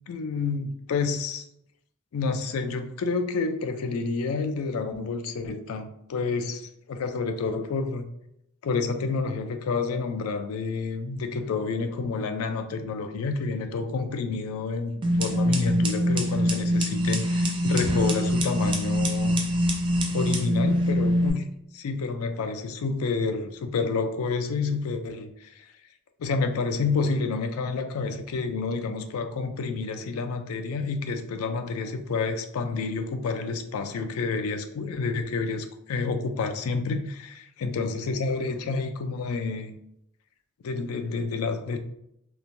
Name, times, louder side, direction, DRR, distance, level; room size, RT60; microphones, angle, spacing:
voice 1, 0.1-1.4 2.1-8.1 8.6-19.4 20.1-21.4 21.7-25.7 26.2-39.7 40.6-41.8, left 4 dB, 70° left, 7 dB, 0.4 m, -29 dB
sound 1, 15.0-21.3, equal, 20° right, 0.4 m, -24 dB
3.0 x 2.1 x 2.6 m, 0.77 s
head